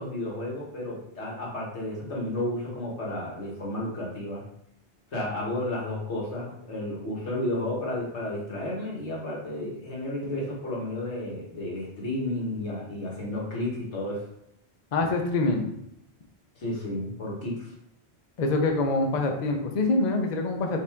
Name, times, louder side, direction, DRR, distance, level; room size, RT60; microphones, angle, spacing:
voice 1, 0.0-4.5 5.1-14.3 16.6-17.7, left 1 dB, 90° left, -4 dB, 1.7 m, -32 dB
voice 2, 14.9-15.7 18.4-20.8, left 2 dB, 45° left, 3 dB, 0.6 m, -25 dB
5.4 x 2.6 x 3.4 m, 0.78 s
omnidirectional pair, 1.1 m